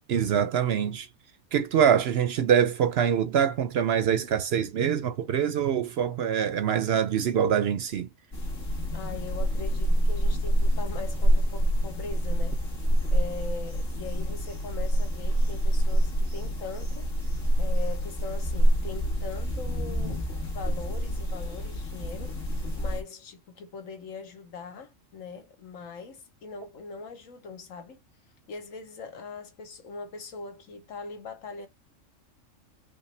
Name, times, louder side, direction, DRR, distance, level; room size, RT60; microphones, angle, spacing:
voice 1, 0.1-1.1 1.5-8.1, right 8 dB, 65° right, 0.7 m, -24 dB
sound 1, 8.3-23.0, equal, 50° left, 1.9 m, -26 dB
voice 2, 8.9-12.6 13.1-17.1 17.6-20.3 20.5-28.0 28.5-31.7, left 4 dB, 80° left, 1.4 m, -41 dB
5.1 x 2.1 x 3.2 m
omnidirectional pair, 1.3 m